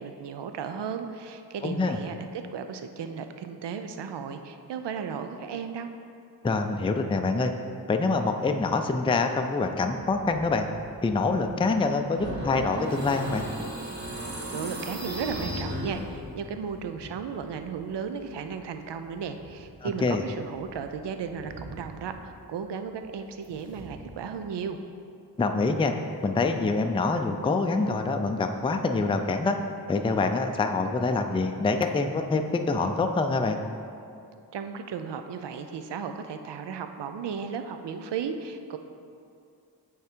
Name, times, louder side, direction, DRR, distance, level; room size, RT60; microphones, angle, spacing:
voice 1, 0.0-2.3 2.5-5.9 14.5-24.8 34.5-38.8, right 6 dB, 80° right, 8 dB, 0.5 m, -35 dB
voice 2, 1.6-2.0 6.4-7.5 7.9-10.7 11.0-13.5 19.8-20.2 25.4-25.9 26.2-29.6 29.9-33.6, left 3 dB, 15° left, 5 dB, 0.3 m, -25 dB
sound 1, 9.6-24.4, right 2 dB, 55° right, 1.4 m, -47 dB
sound 2, 12.1-16.4, equal, 25° right, 1.7 m, -35 dB
8.3 x 3.7 x 4.4 m, 2.5 s
wide cardioid pair, 75°, 41 cm